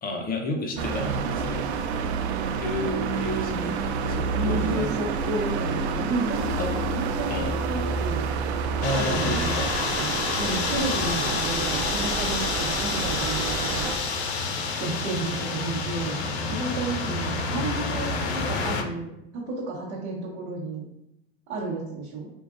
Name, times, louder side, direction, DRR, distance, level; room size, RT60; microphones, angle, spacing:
voice 1, 0.0-1.7 2.6-3.8 4.1-5.0 6.6-6.7 7.3-7.6 8.8-9.7, left 1 dB, 30° left, 3 dB, 0.7 m, -31 dB
sound 1, 0.8-14.0, right 5 dB, 85° right, 0.5 m, -29 dB
voice 2, 4.3-8.2 8.9-9.5 10.0-10.1 10.4-13.8 14.8-16.2 16.5-20.8 21.5-22.3, right 3 dB, 55° right, -6 dB, 1.1 m, -32 dB
sound 2, 8.8-18.8, left 4 dB, 85° left, 0.6 m, -28 dB
4.6 x 2.5 x 2.5 m, 0.82 s
hypercardioid pair, 105°, 32 cm